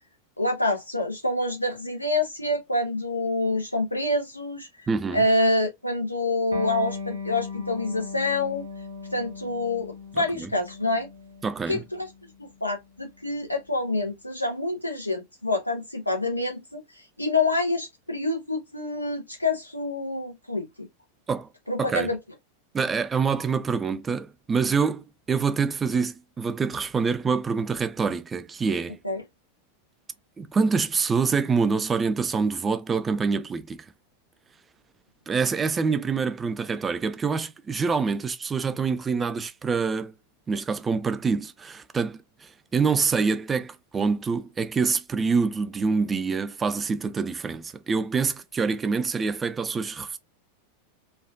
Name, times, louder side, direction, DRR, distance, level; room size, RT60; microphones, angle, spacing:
voice 1, 0.4-4.7 5.1-8.6 9.1-11.1 11.7-12.1 12.4-16.8 17.2-20.9 21.7-22.2 29.0-29.2, left 2 dB, 85° left, 0.8 m, -27 dB
voice 2, 4.9-5.2 10.1-10.5 11.4-11.8 21.3-21.5 21.8-22.1 22.7-29.0 30.4-33.9 35.3-40.1 40.5-50.2, right 5 dB, 15° right, 0.3 m, -26 dB
Electric guitar, 6.5-13.7, left 4 dB, 85° right, 0.7 m, -38 dB
3.1 x 2.3 x 2.5 m
figure-of-eight pair, 90°, 0 cm